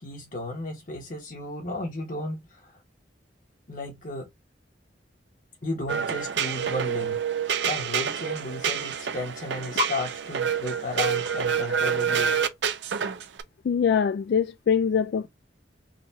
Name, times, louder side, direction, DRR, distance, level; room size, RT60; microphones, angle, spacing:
voice 1, 0.0-2.8 3.7-4.3 5.6-7.2 7.6-12.4, left 2 dB, 45° left, 1.5 m, -34 dB
sound 1, 5.9-13.4, right 7 dB, 70° right, 0.5 m, -27 dB
voice 2, 13.6-15.3, left 7 dB, 60° left, 0.3 m, -23 dB
4.0 x 2.6 x 2.6 m
head